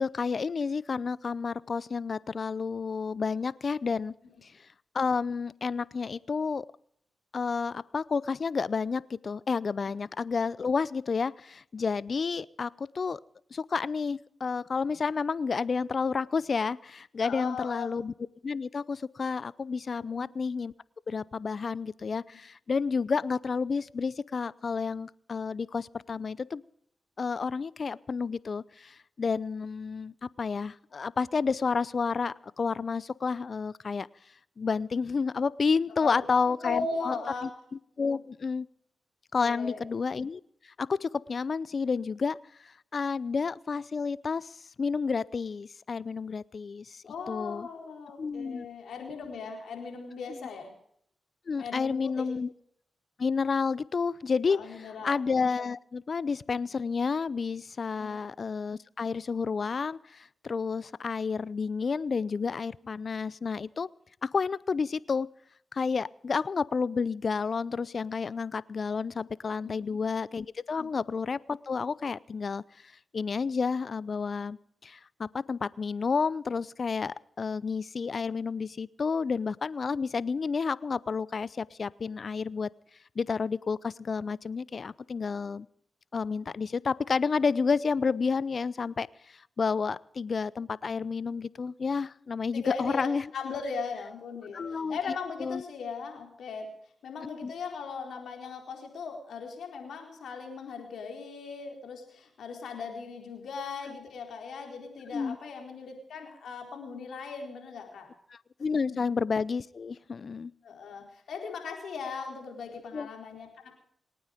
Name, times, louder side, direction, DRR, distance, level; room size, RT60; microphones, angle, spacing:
voice 1, 0.0-4.1 4.4-4.5 4.9-6.6 7.3-13.2 13.5-18.1 18.4-20.7 21.1-26.6 27.2-34.1 34.6-37.2 37.4-37.5 38.0-38.7 39.3-42.4 42.6-47.7 48.2-48.7 50.3-50.4 51.5-52.5 53.2-63.9 64.2-65.3 65.7-72.6 73.1-82.7 83.2-85.7 86.1-93.3 94.5-95.0 95.4-95.6 97.4-97.5 105.1-105.4 108.3-110.5 112.9-113.1, left 5 dB, 55° left, 21 dB, 0.6 m, -30 dB
voice 2, 17.2-17.9 20.0-20.3 35.9-36.2 36.6-37.5 38.1-38.2 39.4-39.8 47.0-50.7 51.6-52.3 54.5-55.2 58.0-58.2 69.6-70.0 70.8-70.9 92.5-96.7 97.0-108.1 108.9-109.1 110.6-113.8, left 5 dB, 80° left, 3 dB, 4.3 m, -38 dB
27.5 x 9.5 x 5.1 m, 0.68 s
supercardioid pair, 50°, 0 cm